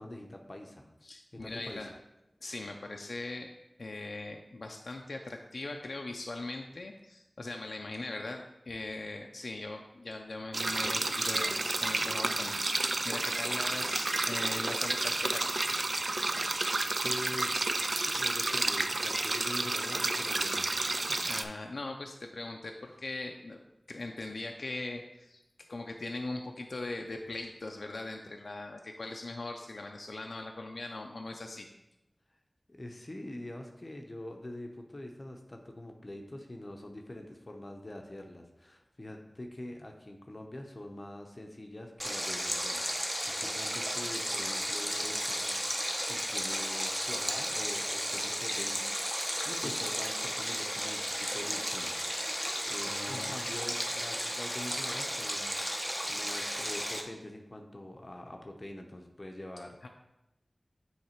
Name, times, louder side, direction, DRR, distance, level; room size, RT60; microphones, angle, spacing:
voice 1, 0.0-0.9 1.4-1.9 17.0-21.3 32.7-59.9, left 1 dB, 40° left, 3 dB, 0.6 m, -45 dB
voice 2, 1.0-1.9 2.4-3.5 3.8-15.5 20.9-31.7 49.5-49.7 52.9-53.4 59.8-59.9, left 2 dB, 90° left, 3 dB, 0.4 m, -40 dB
sound 1, 10.5-21.4, right 2 dB, 65° right, 0.4 m, -31 dB
Stream, 42.0-57.0, equal, 10° right, 0.9 m, -34 dB
7.7 x 3.2 x 4.4 m, 0.93 s
wide cardioid pair, 60°, 0 cm